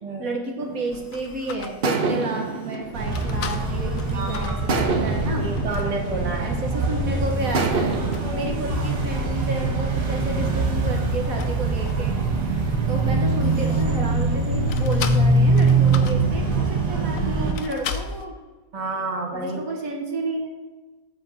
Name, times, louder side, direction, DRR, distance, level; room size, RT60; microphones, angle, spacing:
voice 1, 0.2-5.4 6.4-8.0 8.3-12.2 12.9-18.3 19.3-20.5, right 2 dB, 60° right, 1 dB, 1.7 m, -31 dB
sound 1, 0.6-1.2 1.8-4.1 4.7-6.9 7.5-9.8, right 3 dB, 45° right, 1.0 m, -28 dB
sound 2, 0.9-6.0 6.6-6.7 7.4-7.8 8.1-8.3 10.9-12.3 12.6-14.2 14.7-18.3, left 7 dB, 60° left, 1.0 m, -38 dB
sound 3, 2.9-17.5, right 3 dB, 75° right, 2.0 m, -23 dB
voice 2, 4.1-4.6 5.4-6.6 8.2-8.5 12.9-13.0 18.7-19.6, right 2 dB, 25° right, 1 dB, 1.3 m, -30 dB
8.3 x 5.4 x 7.5 m, 1.3 s
omnidirectional pair, 1.7 m